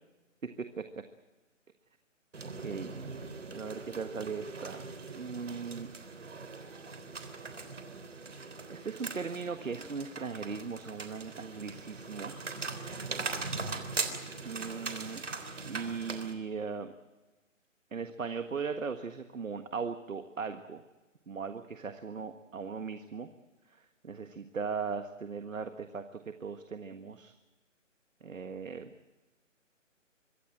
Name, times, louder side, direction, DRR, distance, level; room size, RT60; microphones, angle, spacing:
voice 1, 0.4-0.8 2.4-2.9 3.5-4.8 5.1-5.9 7.4-7.5 8.7-12.3 14.4-15.2 15.7-16.9 17.9-20.8 21.3-23.3 23.7-27.3 28.2-28.9, right 5 dB, 90° right, 8 dB, 1.7 m, -38 dB
sound 1, 2.3-16.3, right 4 dB, 65° right, 3.5 m, -40 dB
25.0 x 16.0 x 8.9 m, 1.1 s
hypercardioid pair, 180°, 39 cm